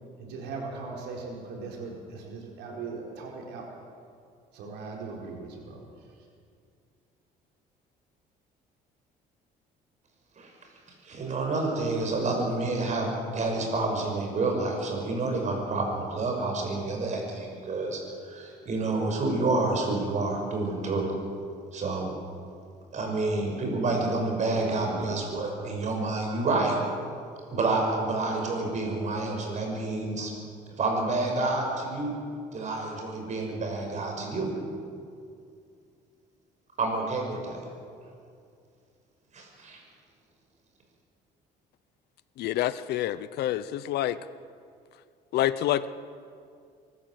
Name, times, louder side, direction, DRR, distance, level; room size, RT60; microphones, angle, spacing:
voice 1, 0.2-3.7 4.5-5.8, right 4 dB, 80° right, 0 dB, 4.4 m, -39 dB
voice 2, 11.0-21.1 21.7-22.1 22.9-26.8 27.5-30.3 30.8-32.1 32.5-34.5 36.8-37.6 39.3-39.8, right 2 dB, 45° right, 2 dB, 5.9 m, -29 dB
voice 3, 42.4-44.2 45.3-45.9, left 13 dB, 75° left, 16 dB, 0.8 m, -27 dB
24.5 x 14.0 x 7.7 m, 2.3 s
cardioid pair, 110°, 17 cm